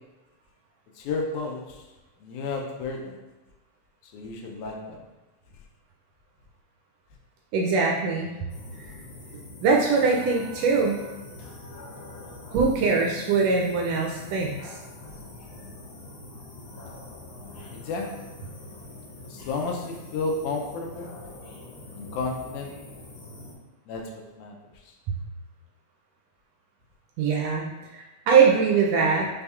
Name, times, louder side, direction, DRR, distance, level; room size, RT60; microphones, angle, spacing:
voice 1, 1.0-1.8 2.2-3.2 4.1-5.0 17.7-18.1 19.3-21.1 22.0-22.7 23.9-24.1 24.4-24.6, left 3 dB, 90° left, 0 dB, 2.0 m, -32 dB
voice 2, 7.5-8.3 9.6-11.0 12.5-14.7 27.2-29.3, right 5 dB, 80° right, 0 dB, 1.5 m, -22 dB
sound 1, 8.5-23.5, left 2 dB, 70° left, 1.2 m, -44 dB
5.5 x 3.4 x 2.3 m, 1.1 s
omnidirectional pair, 3.3 m